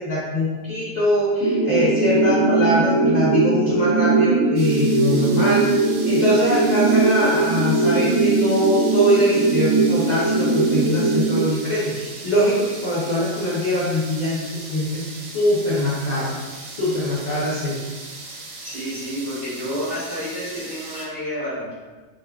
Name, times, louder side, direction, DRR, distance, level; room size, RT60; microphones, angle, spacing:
voice 1, 0.0-5.7 6.1-15.0 15.3-16.3 16.7-17.8, equal, 55° left, -8 dB, 0.5 m, -22 dB
sound 1, 1.4-11.4, right 3 dB, 10° right, 0.6 m, -20 dB
sound 2, 4.6-21.1, right 3 dB, 80° right, 1.0 m, -38 dB
voice 2, 18.6-21.7, equal, 40° right, -11 dB, 1.2 m, -30 dB
3.4 x 2.2 x 2.2 m, 1.3 s
omnidirectional pair, 1.4 m